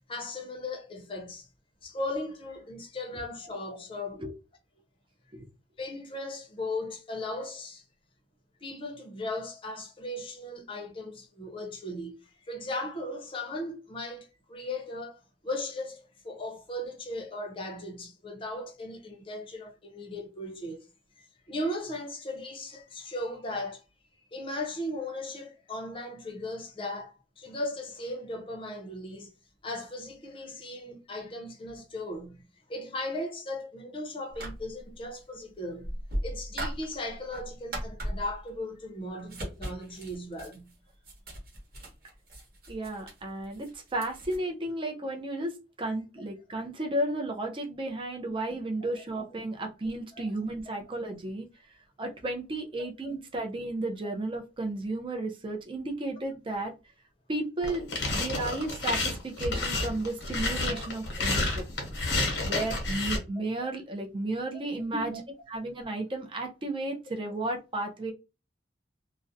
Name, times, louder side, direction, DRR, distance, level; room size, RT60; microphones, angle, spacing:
voice 1, 0.1-1.5 1.8-4.2 5.8-7.8 8.6-12.1 12.4-20.9 21.5-23.8 24.3-29.3 29.6-36.0 36.2-40.7 48.8-48.9 50.1-50.3 52.8-53.2 60.7-60.8 63.2-63.3 64.9-65.2, left 1 dB, 30° left, 0.6 m, -37 dB
sound 1, 34.3-35.0 35.8-38.6 39.2-44.4, right 1 dB, 55° right, 1.0 m, -38 dB
voice 2, 42.7-51.5 52.0-56.7 57.3-61.6 62.4-65.1 65.5-68.1, right 2 dB, 30° right, 0.5 m, -33 dB
sound 2, 57.6-63.2, left 2 dB, 90° left, 0.9 m, -30 dB
2.4 x 2.0 x 2.6 m
head